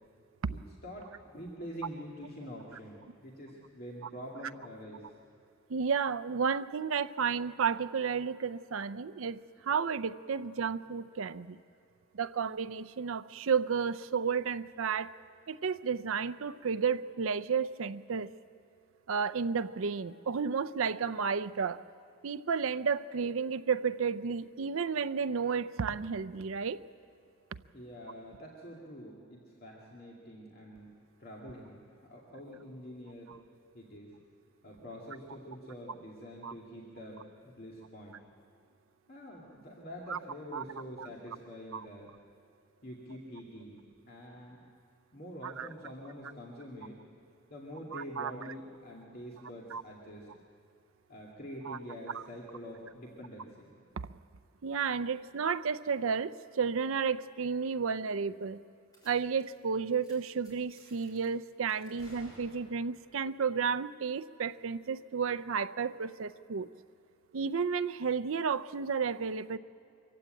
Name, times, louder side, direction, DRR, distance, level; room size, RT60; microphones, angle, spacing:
voice 1, 0.5-5.2 27.7-30.9 31.2-33.4 33.7-34.1 34.6-38.2 39.1-42.1 42.8-43.8 44.1-44.6 45.1-47.0 47.5-50.3 51.1-53.8, equal, 45° left, -3 dB, 2.3 m, -46 dB
voice 2, 5.7-11.6 12.1-15.1 15.5-18.3 19.1-21.8 22.2-26.8 36.4-36.5 40.1-40.2 40.5-40.6 41.0-41.1 41.7-41.9 45.4-45.7 47.9-48.3 49.7-49.8 51.7-51.8 52.1-52.2 54.0-54.1 54.6-58.6 59.0-66.7 67.3-69.6, right 6 dB, 70° right, 12 dB, 0.5 m, -32 dB
sound 1, 58.9-59.1 59.4-59.6 59.9-60.1 60.4-61.3 61.7-63.0, equal, 20° left, 6.2 m, -57 dB
24.0 x 15.5 x 8.9 m, 2.5 s
head